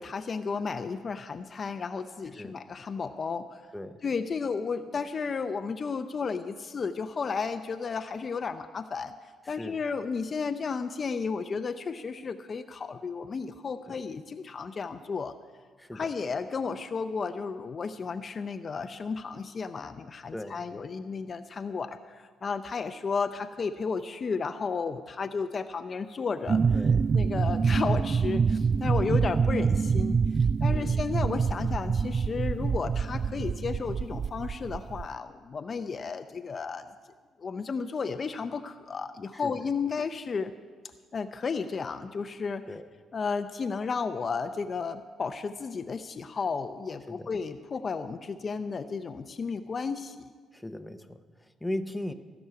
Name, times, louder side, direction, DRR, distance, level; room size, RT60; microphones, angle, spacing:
voice 1, 0.0-3.6 4.0-9.1 9.5-15.3 15.9-26.6 27.1-30.2 30.6-36.8 37.4-40.5 41.1-42.6 43.1-50.2, left 5 dB, 40° left, 9 dB, 0.6 m, -33 dB
voice 2, 9.5-9.8 13.9-14.0 15.8-16.1 20.3-20.6 26.7-27.1 30.7-31.0 39.4-39.5 42.7-42.9 47.1-47.3 50.5-52.1, left 1 dB, 5° left, 7 dB, 0.8 m, -38 dB
sound 1, 26.5-35.1, right 5 dB, 45° right, 0.3 m, -26 dB
16.0 x 6.2 x 9.5 m, 1.5 s
cardioid pair, 90°, 0 cm